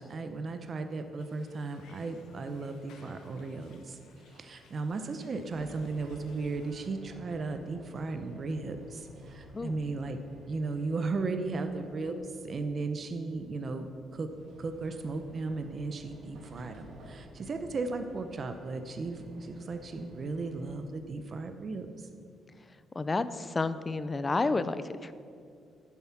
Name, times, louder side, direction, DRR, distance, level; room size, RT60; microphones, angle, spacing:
voice 1, 0.0-4.0 4.3-10.2 10.5-12.2 12.4-14.3 14.6-22.1, right 3 dB, 45° right, 7 dB, 0.7 m, -36 dB
sound 1, 1.2-6.9, left 4 dB, 85° left, 1.2 m, -61 dB
sound 2, 5.4-20.8, equal, 80° right, 2.2 m, -53 dB
voice 2, 22.9-25.1, left 3 dB, 25° left, 13 dB, 0.5 m, -30 dB
10.5 x 7.3 x 5.8 m, 2.4 s
cardioid pair, 90°, 0 cm